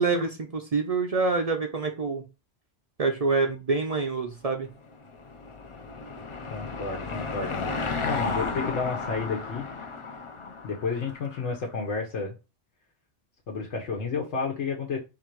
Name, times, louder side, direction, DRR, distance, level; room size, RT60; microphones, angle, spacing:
voice 1, 0.0-2.2 3.0-4.7, right 4 dB, 45° right, 4 dB, 0.5 m, -26 dB
Car passing by / Engine, 4.7-11.6, left 4 dB, 40° left, 0.5 m, -34 dB
voice 2, 6.5-7.8 8.0-9.6 10.6-12.3 13.5-15.0, left 4 dB, 80° left, 0 dB, 1.2 m, -31 dB
3.9 x 2.6 x 4.4 m, 0.28 s
omnidirectional pair, 1.2 m